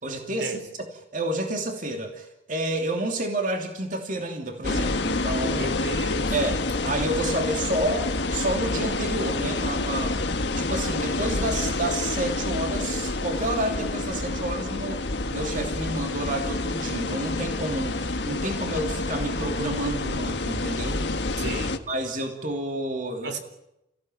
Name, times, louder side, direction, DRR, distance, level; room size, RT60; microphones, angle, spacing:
voice 1, 0.0-5.7 6.3-10.2 10.5-21.0 21.9-23.4, right 1 dB, 50° right, 3 dB, 3.0 m, -30 dB
sound 1, 4.6-21.8, left 2 dB, 80° left, 1.6 m, -28 dB
voice 2, 5.6-6.3 21.4-21.8 23.2-23.4, right 2 dB, 85° right, 8 dB, 3.6 m, -34 dB
29.5 x 16.0 x 9.3 m, 0.88 s
head